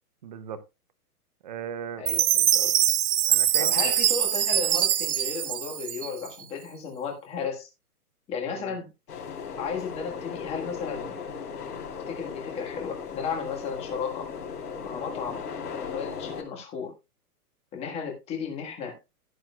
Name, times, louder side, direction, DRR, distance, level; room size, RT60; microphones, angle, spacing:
voice 1, 0.2-0.6 1.4-2.1 3.3-4.0 8.5-8.8, right 8 dB, 30° right, 0.7 m, -38 dB
voice 2, 2.0-2.7 3.6-7.7 8.3-8.9 9.6-11.1 12.1-14.3 14.8-15.4 15.9-16.9 17.7-19.0, left 6 dB, 15° left, 1.5 m, -34 dB
Chime, 2.1-6.4, right 11 dB, 65° right, 0.8 m, -23 dB
sound 1, 9.1-16.4, left 6 dB, 80° left, 3.6 m, -37 dB
16.0 x 7.6 x 2.3 m
hypercardioid pair, 165°, 46 cm